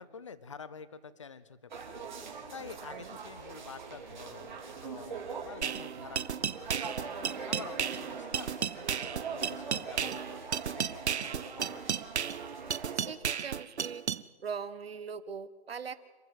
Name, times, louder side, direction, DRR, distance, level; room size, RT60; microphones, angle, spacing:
voice 1, 0.0-1.9 2.5-6.9 7.5-11.9, left 5 dB, 30° left, 16 dB, 0.7 m, -48 dB
sound 1, 1.7-13.1, right 5 dB, 45° right, 3.0 m, -42 dB
voice 2, 2.6-3.1 12.9-14.0 14.4-16.0, right 6 dB, 65° right, 14 dB, 1.3 m, -41 dB
sound 2, 5.6-14.2, right 7 dB, 85° right, 0.8 m, -34 dB
27.0 x 12.0 x 8.1 m, 1.3 s
hypercardioid pair, 170°, 32 cm